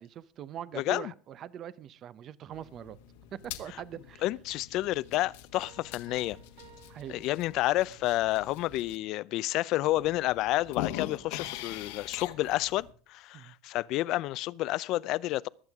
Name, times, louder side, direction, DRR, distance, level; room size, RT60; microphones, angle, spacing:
voice 1, 0.0-3.0 3.6-4.2 6.9-7.2 13.3-13.5, right 10 dB, 40° right, 0.7 m, -42 dB
voice 2, 0.8-1.1 4.2-6.4 7.1-15.5, left 16 dB, 55° left, 0.5 m, -30 dB
sound 1, 2.5-9.0 9.5-9.6 9.9-12.9, left 12 dB, 85° left, 1.5 m, -43 dB
Piano, 5.6-8.1, right 8 dB, 70° right, 3.8 m, -57 dB
23.5 x 8.1 x 3.6 m
supercardioid pair, 130°, 0 cm